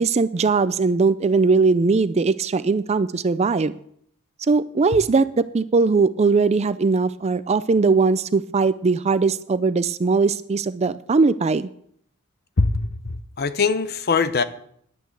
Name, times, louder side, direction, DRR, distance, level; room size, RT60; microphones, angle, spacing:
voice 1, 0.0-3.7 4.4-11.7, right 4 dB, 30° right, 14 dB, 0.4 m, -20 dB
voice 2, 12.6-14.4, left 4 dB, 45° left, 12 dB, 0.8 m, -22 dB
10.5 x 9.3 x 7.7 m, 0.67 s
head